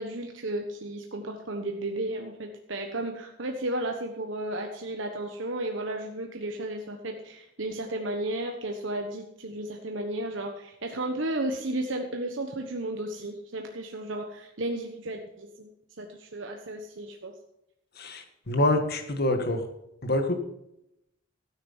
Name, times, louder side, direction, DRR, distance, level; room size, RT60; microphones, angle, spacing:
voice 1, 0.0-15.7 16.0-17.3, right 1 dB, 65° right, 3 dB, 1.2 m, -33 dB
voice 2, 18.0-19.7 20.0-20.4, left 1 dB, 50° left, 6 dB, 1.8 m, -26 dB
13.0 x 9.5 x 5.6 m, 0.83 s
head